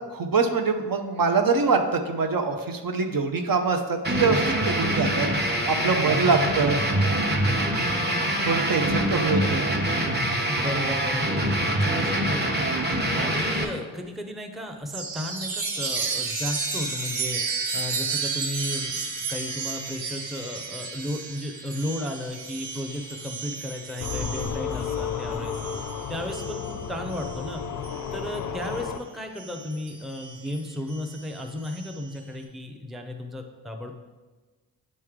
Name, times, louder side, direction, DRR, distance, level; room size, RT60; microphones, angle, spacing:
voice 1, 0.1-5.3 5.7-6.8 8.4-9.7, right 4 dB, 50° right, 5 dB, 0.7 m, -24 dB
sound 1, 4.0-13.6, right 1 dB, 20° right, 1.0 m, -24 dB
voice 2, 6.1-6.5 7.4-8.1 9.1-9.2 10.4-12.7 13.1-27.6 28.1-33.9, left 1 dB, ahead, 4 dB, 0.6 m, -34 dB
Chime, 14.9-28.9 29.4-32.2, right 4 dB, 80° right, 0.9 m, -33 dB
sound 2, 24.0-29.0, left 7 dB, 45° left, 0.5 m, -32 dB
8.5 x 3.2 x 3.6 m, 1.3 s
cardioid pair, 50°, 45 cm